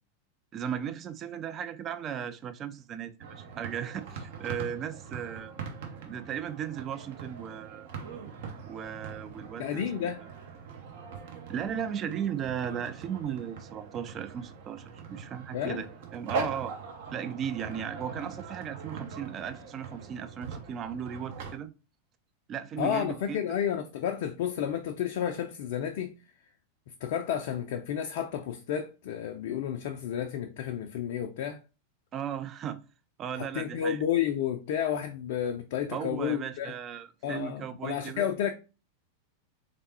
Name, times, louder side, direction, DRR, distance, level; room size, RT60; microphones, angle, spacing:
voice 1, 0.5-5.5 6.1-7.9 8.7-10.1 11.5-15.9 16.1-16.7 17.1-21.7 22.5-23.4 32.1-32.8 33.2-34.0 35.9-38.3, right 8 dB, 30° right, 0.4 m, -36 dB
sound 1, 3.2-21.6, right 5 dB, 55° right, 0.7 m, -42 dB
voice 2, 9.6-10.2 15.5-15.8 22.8-26.1 27.0-31.6 33.3-36.7 37.2-38.5, left 9 dB, 50° left, 0.4 m, -31 dB
3.8 x 3.3 x 2.7 m
figure-of-eight pair, 90°, 0 cm